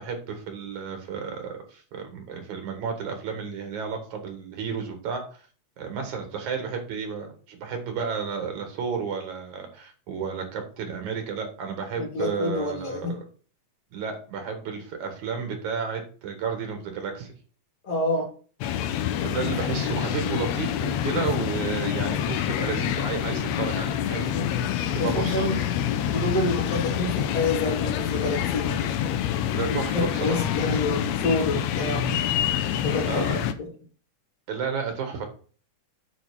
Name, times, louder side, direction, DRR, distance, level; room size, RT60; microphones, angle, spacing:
voice 1, 0.0-5.4 5.8-13.1 13.9-17.3 19.2-24.3 24.9-25.7 29.5-30.8 33.0-33.4 34.5-35.3, right 6 dB, 75° right, 5 dB, 3.0 m, -32 dB
voice 2, 12.0-13.1 17.8-18.3 24.3-24.5 25.0-25.6 26.1-28.9 29.7-32.1 32.8-33.3 33.6-33.7, left 2 dB, 60° left, -4 dB, 3.2 m, -28 dB
sound 1, 18.6-33.5, left 10 dB, 75° left, 1.8 m, -27 dB
9.0 x 4.3 x 6.0 m, 0.41 s
omnidirectional pair, 3.4 m